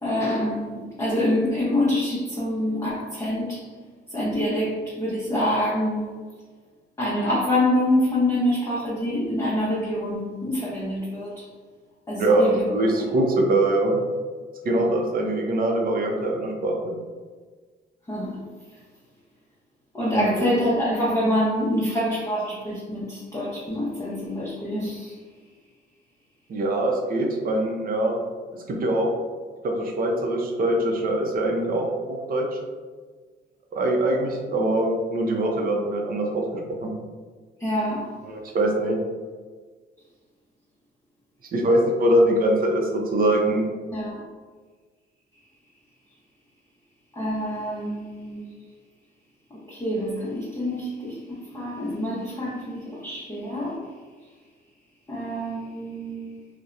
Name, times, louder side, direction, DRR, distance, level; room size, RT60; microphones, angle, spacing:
voice 1, 0.0-3.7 4.1-6.2 7.0-11.5 12.1-12.7 13.0-13.1 18.1-18.8 19.9-25.2 37.6-38.2 43.9-44.2 47.1-48.5 49.5-53.9 55.1-56.5, left 1 dB, 15° left, -9 dB, 0.7 m, -26 dB
voice 2, 12.2-14.0 14.6-16.7 20.1-20.5 26.5-28.2 28.7-29.1 29.6-32.5 33.7-36.4 36.8-36.9 38.3-39.0 41.5-43.6, right 1 dB, 45° right, 1 dB, 0.6 m, -23 dB
2.7 x 2.1 x 2.3 m, 1.5 s
cardioid pair, 90°, 20 cm